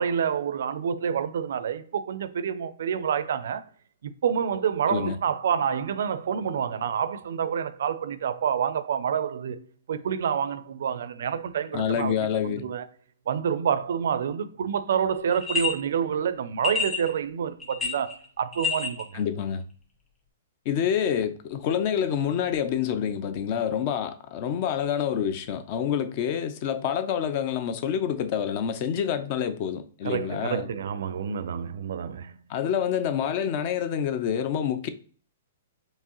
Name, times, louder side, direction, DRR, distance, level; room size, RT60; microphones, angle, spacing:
voice 1, 0.0-3.7 4.0-12.2 12.4-12.9 13.3-19.2 30.0-32.3, right 8 dB, 65° right, 0.4 m, -28 dB
voice 2, 11.7-12.7 19.1-19.6 20.7-30.7 32.5-34.9, left 8 dB, 30° left, 0.4 m, -27 dB
sound 1, 15.3-15.7 16.6-17.1 17.6-18.2 18.5-19.0, left 6 dB, 15° left, 1.2 m, -28 dB
4.5 x 3.1 x 3.0 m
hypercardioid pair, 165°, 0 cm